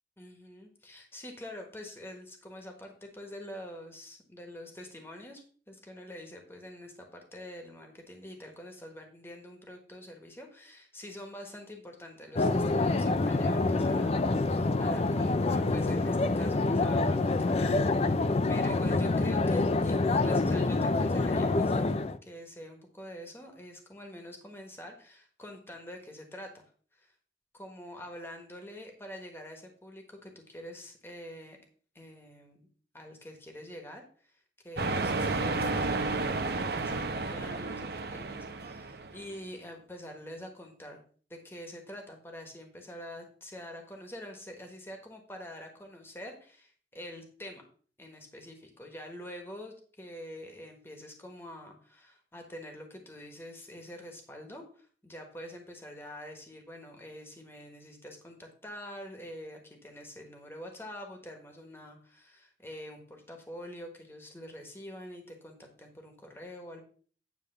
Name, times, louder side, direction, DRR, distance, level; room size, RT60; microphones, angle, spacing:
voice 1, 0.2-26.5 26.9-27.1 27.5-31.6 31.9-32.7 32.9-41.0 41.3-47.6 48.0-66.8, left 1 dB, 15° left, 3 dB, 1.3 m, -46 dB
sound 1, 12.4-22.2, left 3 dB, 35° left, 0.4 m, -26 dB
sound 2, 34.8-39.3, right 3 dB, 60° right, 0.7 m, -32 dB
9.6 x 3.4 x 6.6 m, 0.43 s
head